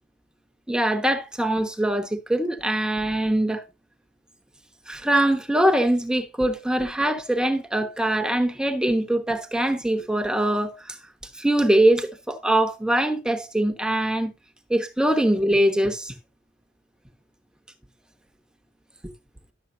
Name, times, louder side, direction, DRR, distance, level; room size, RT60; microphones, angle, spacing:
voice 1, 0.7-3.6 4.9-11.0 11.3-14.3 14.7-16.1, right 1 dB, 5° right, 1.1 m, -22 dB
12.0 x 7.2 x 2.7 m
head